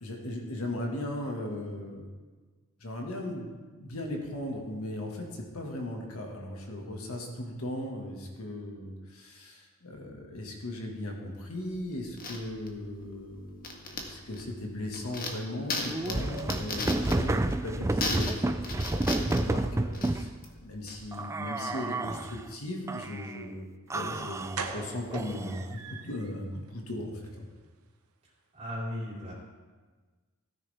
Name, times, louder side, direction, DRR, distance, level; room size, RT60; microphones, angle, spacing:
voice 1, 0.0-2.0 2.8-20.3 20.6-23.7 23.9-27.5, left 1 dB, 70° left, 1 dB, 1.8 m, -37 dB
sound 1, 11.7-21.1, left 3 dB, 40° left, 1.5 m, -37 dB
sound 2, 15.8-20.3 21.1-22.4 22.9-23.5 23.9-25.7, right 2 dB, 15° right, 0.4 m, -31 dB
sound 3, 23.9-24.0 24.5-26.3 26.7-26.8 27.1-27.3 27.6-27.7, right 5 dB, 75° right, 1.1 m, -40 dB
voice 2, 28.6-29.3, left 1 dB, 30° right, -5 dB, 3.6 m, -36 dB
16.5 x 9.7 x 3.5 m, 1.4 s
head